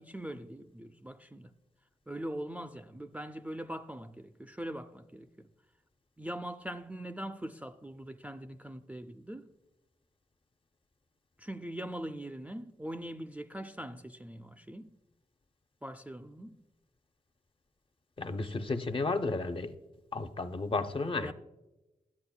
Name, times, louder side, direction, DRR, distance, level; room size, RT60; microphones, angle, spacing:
voice 1, 0.0-1.5 2.1-5.5 6.2-9.5 11.4-14.9 15.8-16.6 21.2-21.3, right 1 dB, 10° right, 0.3 m, -42 dB
voice 2, 18.2-19.7 20.1-21.3, left 3 dB, 35° left, 0.6 m, -33 dB
11.5 x 8.0 x 2.2 m
cardioid pair, 45°, 15 cm